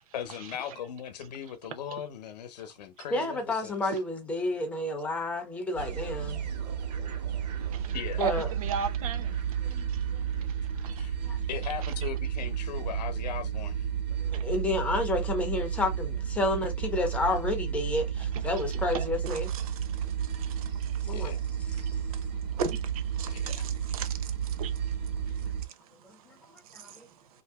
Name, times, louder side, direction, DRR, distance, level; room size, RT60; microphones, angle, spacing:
voice 1, 0.1-4.0 7.9-8.2 9.7-9.8 11.0-11.2 11.5-13.9 21.1-21.4 23.3-23.7, left 9 dB, 80° left, 0.7 m, -39 dB
voice 2, 3.1-6.4 8.2-8.5 9.6-9.9 10.1-10.3 11.2-11.4 14.2-19.5 21.0-21.3 26.0-26.2 26.5-26.9, left 2 dB, 5° left, 0.4 m, -30 dB
sound 1, 5.7-25.6, right 8 dB, 85° right, 1.0 m, -32 dB
voice 3, 7.6-9.4 9.9-10.1 10.4-11.1 11.8-11.9 14.3-14.4 18.9-21.1 21.8-27.1, right 6 dB, 60° right, 0.7 m, -39 dB
2.8 x 2.7 x 3.4 m
supercardioid pair, 170°, 21 cm